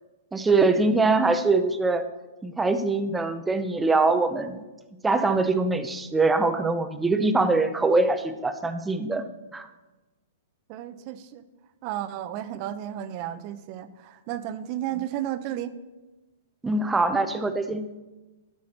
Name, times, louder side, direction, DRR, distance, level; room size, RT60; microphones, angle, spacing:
voice 1, 0.3-2.1 2.4-4.6 5.0-9.2 9.5-9.7 16.6-17.9, right 3 dB, 10° right, 9 dB, 0.8 m, -23 dB
voice 2, 10.7-11.4 11.8-15.7, right 12 dB, 45° right, 12 dB, 0.8 m, -33 dB
12.0 x 4.8 x 5.8 m, 1.1 s
hypercardioid pair, 125°, 0 cm